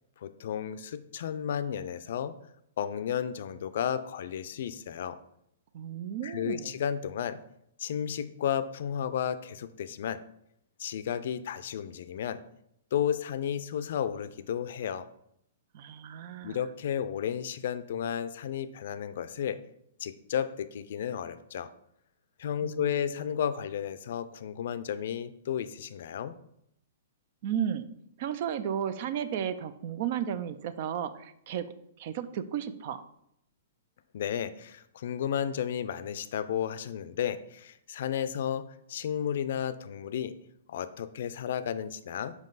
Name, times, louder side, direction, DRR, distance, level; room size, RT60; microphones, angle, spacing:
voice 1, 0.2-2.3 2.8-5.2 6.2-7.4 7.8-10.2 10.8-12.4 12.9-15.1 16.4-19.6 20.0-21.7 22.4-26.3 34.1-40.3 40.7-42.3, left 9 dB, 65° left, 13 dB, 0.4 m, -33 dB
voice 2, 5.7-6.8 15.7-16.6 22.6-23.2 27.4-27.9 28.2-31.7 32.0-33.0, right 9 dB, 50° right, 13 dB, 0.4 m, -34 dB
5.3 x 4.9 x 4.0 m, 0.75 s
hypercardioid pair, 130°, 0 cm